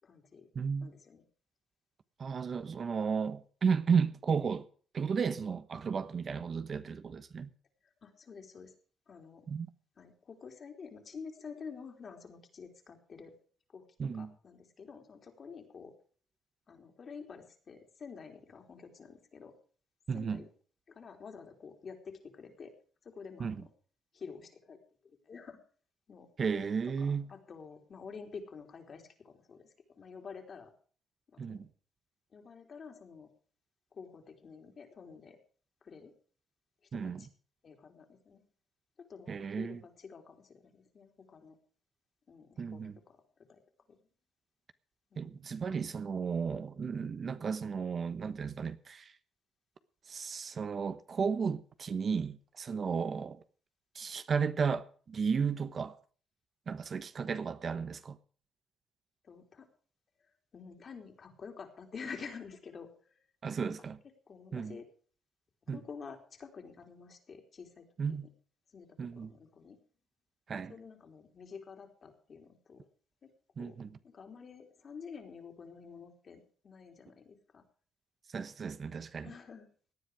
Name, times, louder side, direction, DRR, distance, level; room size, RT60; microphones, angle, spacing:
voice 1, 0.0-0.5 0.8-1.2 8.0-8.7 9.1-9.5 10.0-13.3 13.7-15.9 16.7-19.5 20.1-20.5 20.9-22.7 23.0-23.7 24.1-25.6 26.1-26.3 27.0-30.7 31.3-31.6 32.3-33.3 33.9-35.4 35.8-36.1 36.9-37.3 37.6-38.4 39.0-41.6 42.3-43.6 43.9-44.0 45.1-45.3 54.0-54.1 59.2-59.7 60.2-63.2 64.3-64.9 65.7-68.2 68.7-69.8 70.5-72.8 73.2-73.3 73.6-77.6 79.2-79.7, left 5 dB, 45° left, 3.7 m, -49 dB
voice 2, 0.5-0.9 2.2-4.7 4.9-7.5 9.5-9.7 14.0-14.3 20.1-20.4 23.4-23.6 26.4-27.3 31.4-31.7 36.9-37.2 39.3-39.8 42.6-43.0 45.2-49.1 50.1-53.4 53.9-56.0 56.7-58.2 63.4-64.0 64.5-64.8 65.7-65.8 68.0-68.3 69.0-69.3 70.5-70.7 73.6-73.9 78.3-79.3, right 6 dB, 45° right, 1.0 m, -34 dB
17.5 x 10.0 x 4.9 m
cardioid pair, 90°, 0 cm